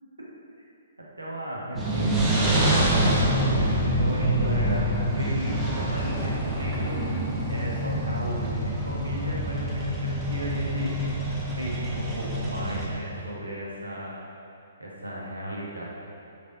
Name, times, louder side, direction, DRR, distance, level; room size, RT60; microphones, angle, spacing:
voice 1, 1.0-7.0 7.5-11.0 11.5-14.1 14.8-15.8, equal, 80° right, -5 dB, 0.9 m, -35 dB
sound 1, 1.7-12.9, right 1 dB, 10° right, 0.6 m, -26 dB
5.1 x 3.4 x 2.8 m, 2.8 s
figure-of-eight pair, 125°, 0 cm